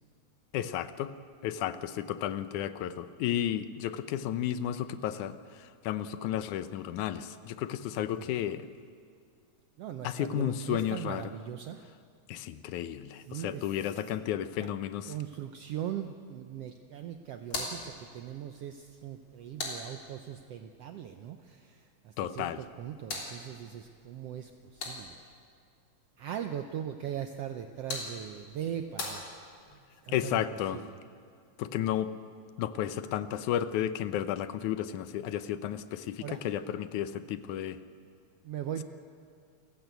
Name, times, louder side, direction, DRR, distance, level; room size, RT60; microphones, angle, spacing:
voice 1, 0.5-1.1 1.4-8.7 10.0-11.3 12.3-15.1 22.2-22.6 30.1-30.8 31.6-32.1 32.6-37.8, left 11 dB, 85° left, 12 dB, 2.3 m, -33 dB
voice 2, 9.8-11.8 13.2-14.0 14.6-14.7 15.1-25.2 26.2-29.3 30.0-30.4 30.7-31.0 36.2-36.4 38.4-38.8, right 10 dB, 70° right, 6 dB, 1.6 m, -40 dB
sound 1, 17.4-20.5 22.5-25.4 27.4-29.9, left 2 dB, 45° left, 4.2 m, -42 dB
28.5 x 15.0 x 8.2 m, 2.2 s
omnidirectional pair, 3.4 m